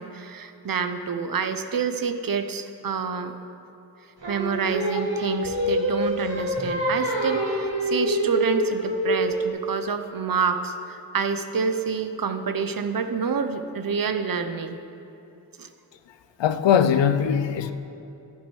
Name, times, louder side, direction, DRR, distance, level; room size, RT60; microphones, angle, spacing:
voice 1, 0.0-3.4 4.3-14.8 15.6-15.7, right 5 dB, 55° right, 9 dB, 0.7 m, -28 dB
Singing, 4.2-9.4, equal, 90° right, 2.1 m, -26 dB
voice 2, 16.4-17.7, left 8 dB, 85° left, 10 dB, 0.5 m, -20 dB
11.0 x 9.1 x 3.1 m, 2.8 s
cardioid pair, 45°, 43 cm